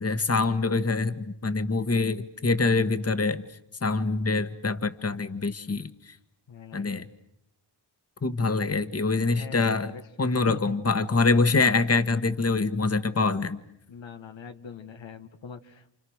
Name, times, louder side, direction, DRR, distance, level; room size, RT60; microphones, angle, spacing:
voice 1, 0.0-3.4 3.8-6.2 6.7-7.0 8.2-9.9 10.2-13.6, left 3 dB, 35° left, 12 dB, 1.6 m, -25 dB
voice 2, 6.5-7.1 9.3-10.0 10.3-11.1 13.9-15.9, left 6 dB, 90° left, 8 dB, 1.9 m, -42 dB
29.5 x 28.0 x 6.4 m, 0.79 s
cardioid pair, 70°, 44 cm